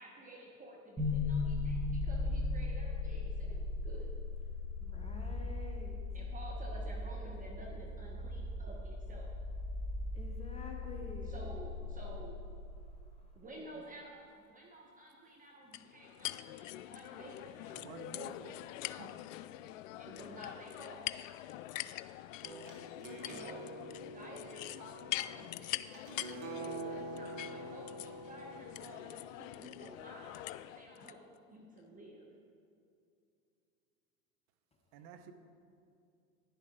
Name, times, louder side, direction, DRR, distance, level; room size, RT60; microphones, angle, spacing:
voice 1, 0.0-4.1 6.1-9.4 11.2-12.4 13.3-18.1 20.0-21.1 23.2-23.7 24.0-26.0 26.6-31.2 31.5-32.2, right 1 dB, 20° right, -1 dB, 1.1 m, -52 dB
sound 1, 1.0-13.0, left 3 dB, ahead, 1.8 m, -38 dB
voice 2, 4.8-6.0 10.1-11.3, left 3 dB, 15° left, 1 dB, 1.1 m, -48 dB
sound 2, 15.7-31.2, left 15 dB, 65° left, 0.5 m, -44 dB
voice 3, 17.7-19.1 34.9-35.3, right 6 dB, 50° right, 8 dB, 1.0 m, -51 dB
sound 3, 22.4-30.1, right 1 dB, 70° right, 2.0 m, -47 dB
10.5 x 10.0 x 3.8 m, 2.4 s
hypercardioid pair, 100°, 43 cm